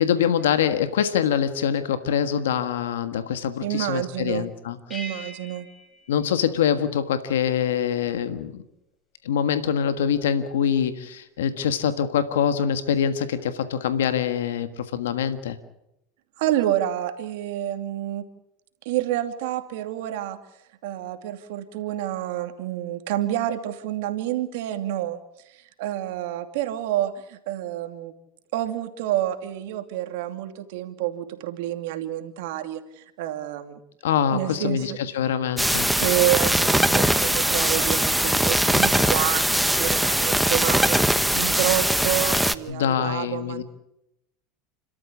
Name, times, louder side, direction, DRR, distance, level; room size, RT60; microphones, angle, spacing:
voice 1, 0.0-4.8 6.1-8.6 9.2-15.6 34.0-35.9 42.7-43.6, left 8 dB, 90° left, 10 dB, 1.5 m, -24 dB
voice 2, 3.6-4.5 4.9-5.7 16.4-18.2 18.8-20.4 20.8-25.2 25.5-28.1 28.5-33.8 34.3-35.0 36.0-43.6, right 13 dB, 75° right, 7 dB, 2.6 m, -28 dB
sound 1, 4.9-7.1, right 1 dB, 20° left, 7.7 m, -42 dB
sound 2, 35.6-42.5, right 1 dB, 5° right, 1.1 m, -21 dB
30.0 x 13.5 x 8.5 m, 0.85 s
supercardioid pair, 100°, 0 cm